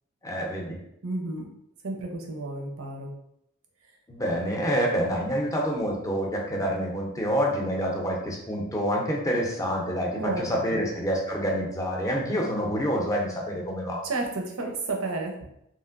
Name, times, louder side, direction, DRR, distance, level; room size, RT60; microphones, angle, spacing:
voice 1, 0.2-0.8 4.1-14.0, equal, 15° left, -1 dB, 0.5 m, -27 dB
voice 2, 1.0-1.5 1.8-3.1 10.1-10.8 14.0-15.3, right 2 dB, 85° right, 2 dB, 0.6 m, -31 dB
3.1 x 2.5 x 2.4 m, 0.78 s
head